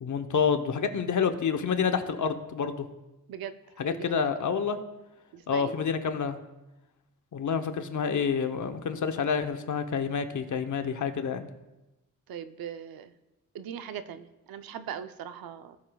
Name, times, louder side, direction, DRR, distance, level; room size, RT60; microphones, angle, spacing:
voice 1, 0.0-2.9 3.8-4.8 5.5-6.4 7.3-11.5, left 6 dB, 55° left, 8 dB, 0.8 m, -28 dB
voice 2, 3.9-4.6 5.3-5.7 12.3-13.1 13.5-15.8, right 9 dB, 80° right, 10 dB, 0.6 m, -40 dB
16.5 x 6.8 x 2.3 m, 1.0 s
cardioid pair, 95°, 35 cm